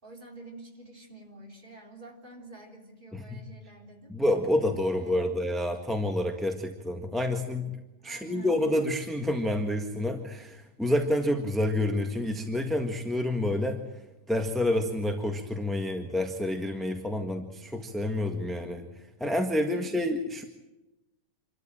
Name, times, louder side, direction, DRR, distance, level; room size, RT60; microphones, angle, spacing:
voice 1, 0.0-4.2 4.9-5.3 8.0-8.5 19.7-20.0, right 2 dB, 30° right, 1 dB, 3.7 m, -48 dB
voice 2, 4.1-7.7 8.0-20.4, left 1 dB, ahead, 3 dB, 1.5 m, -28 dB
27.0 x 13.5 x 8.9 m, 1.0 s
omnidirectional pair, 1.8 m